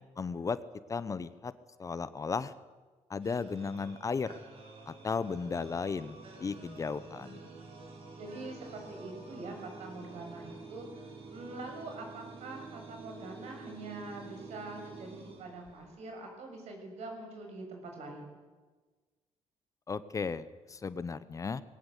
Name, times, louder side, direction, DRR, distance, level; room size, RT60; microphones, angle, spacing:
voice 1, 0.2-0.6 0.9-1.5 1.8-2.5 3.1-4.3 4.9-7.4 19.9-21.6, left 5 dB, 30° left, 15 dB, 0.8 m, -35 dB
sound 1, 3.2-16.1, right 3 dB, 55° right, 5.3 m, -49 dB
voice 2, 8.2-18.3, right 2 dB, 75° right, 3 dB, 6.7 m, -44 dB
21.0 x 18.5 x 8.2 m, 1.3 s
cardioid pair, 125°, 12 cm